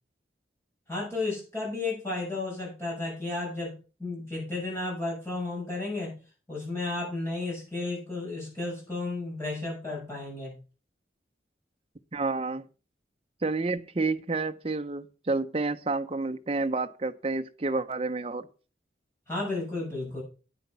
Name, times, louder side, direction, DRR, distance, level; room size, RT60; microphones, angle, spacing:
voice 1, 0.9-6.2 6.5-10.6 19.3-20.2, left 2 dB, 15° left, -4 dB, 7.0 m, -33 dB
voice 2, 12.1-12.6 13.4-18.5, right 3 dB, 30° right, 7 dB, 0.6 m, -29 dB
9.5 x 8.1 x 5.5 m, 0.35 s
head